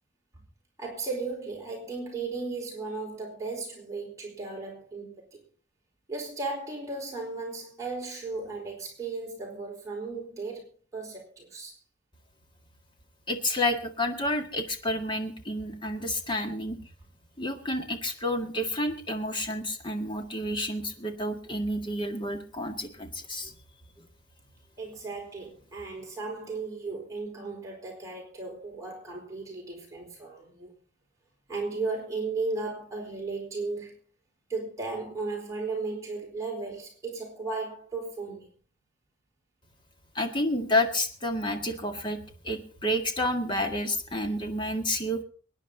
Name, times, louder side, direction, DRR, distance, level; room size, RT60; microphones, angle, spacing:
voice 1, 0.8-5.4 6.1-10.6 10.9-11.7 24.8-30.7 31.5-33.9 34.5-38.5, right 3 dB, 15° right, 4.3 m, -35 dB
voice 2, 13.3-16.8 17.4-23.5 24.0-24.1 40.2-42.2 42.4-45.2, left 1 dB, 25° left, 1.8 m, -30 dB
23.5 x 9.9 x 3.9 m
head